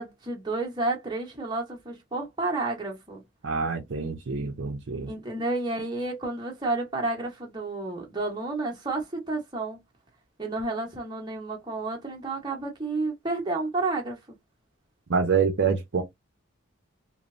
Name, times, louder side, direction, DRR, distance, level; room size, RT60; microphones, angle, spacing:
voice 1, 0.0-3.2 5.1-9.8 10.4-14.2, right 2 dB, 20° right, 0.9 m, -31 dB
voice 2, 3.4-5.1 15.1-16.0, right 5 dB, 55° right, 0.5 m, -26 dB
3.1 x 2.0 x 2.4 m
head